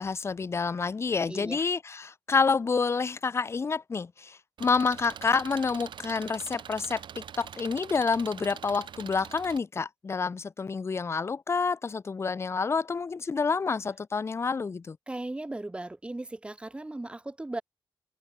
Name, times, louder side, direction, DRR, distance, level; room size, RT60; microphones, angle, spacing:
voice 1, 0.0-15.0, left 5 dB, 30° left, 0.7 m, -28 dB
voice 2, 1.3-1.6 15.1-17.6, right 2 dB, 10° right, 1.8 m, -37 dB
Engine, 4.6-9.6, right 8 dB, 65° right, 1.7 m, -44 dB
open air
wide cardioid pair, 125°, 9 cm